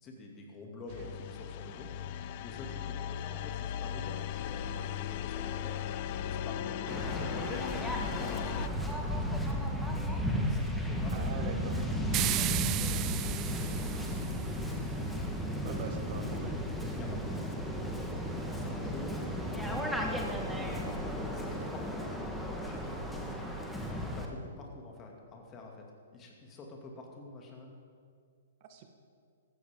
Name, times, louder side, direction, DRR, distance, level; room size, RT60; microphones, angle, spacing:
voice 1, 0.0-1.9 2.4-5.8 6.2-7.3 7.9-9.8 10.4-14.5 15.3-15.8 16.9-17.6 18.5-20.8 21.3-22.1 22.4-23.1 23.9-25.8 26.1-27.7, left 2 dB, 25° left, 0 dB, 2.4 m, -47 dB
sound 1, 0.9-8.7, left 10 dB, 45° left, 0.4 m, -37 dB
Waves surf, 6.9-24.3, equal, ahead, 1.4 m, -34 dB
voice 2, 11.1-11.7 15.6-16.8 28.6-28.9, right 6 dB, 45° right, 5 dB, 1.2 m, -43 dB
sound 2, 12.1-14.5, right 15 dB, 30° right, 0.4 m, -34 dB
15.0 x 13.0 x 3.8 m, 2.2 s
hypercardioid pair, 125°, 0 cm